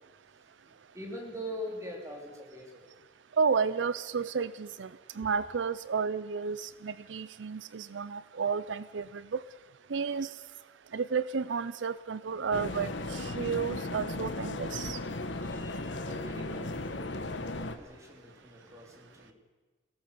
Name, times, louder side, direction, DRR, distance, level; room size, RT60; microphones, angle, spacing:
voice 1, 0.9-2.9 15.1-19.3, equal, 15° right, 1 dB, 3.7 m, -43 dB
voice 2, 3.4-4.9 5.2-9.4 9.9-10.3 10.9-15.0, right 5 dB, 85° right, 16 dB, 0.5 m, -32 dB
sound 1, 12.5-17.8, left 2 dB, 80° left, 1.4 m, -36 dB
23.5 x 17.5 x 6.9 m, 1.3 s
head